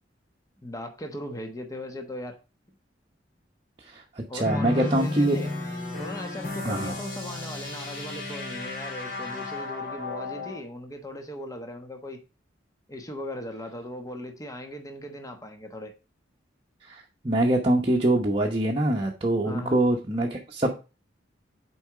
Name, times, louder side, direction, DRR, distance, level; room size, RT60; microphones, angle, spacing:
voice 1, 0.6-2.4 4.3-5.5 6.0-12.2 12.9-15.9 19.4-19.8, left 1 dB, 20° left, 1.1 m, -38 dB
voice 2, 3.8-5.4 6.6-6.9 16.9-20.7, right 1 dB, 30° right, 1.0 m, -24 dB
sound 1, 4.4-10.6, left 2 dB, 55° left, 3.2 m, -33 dB
7.0 x 4.7 x 4.8 m
head